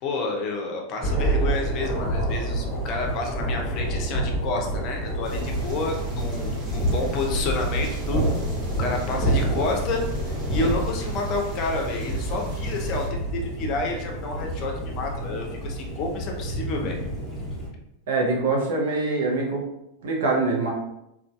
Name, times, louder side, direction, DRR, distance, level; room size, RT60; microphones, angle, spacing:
voice 1, 0.0-8.3 8.8-10.0 10.5-17.0, left 3 dB, 45° left, 1 dB, 0.5 m, -29 dB
Thunder, 1.0-17.7, right 1 dB, 5° left, 0.8 m, -28 dB
sound 1, 5.2-13.1, right 1 dB, 35° right, 1.0 m, -38 dB
voice 2, 18.1-19.6 20.0-20.7, right 3 dB, 65° right, -1 dB, 0.6 m, -24 dB
2.5 x 2.3 x 2.3 m, 0.84 s
hypercardioid pair, 95°, 0 cm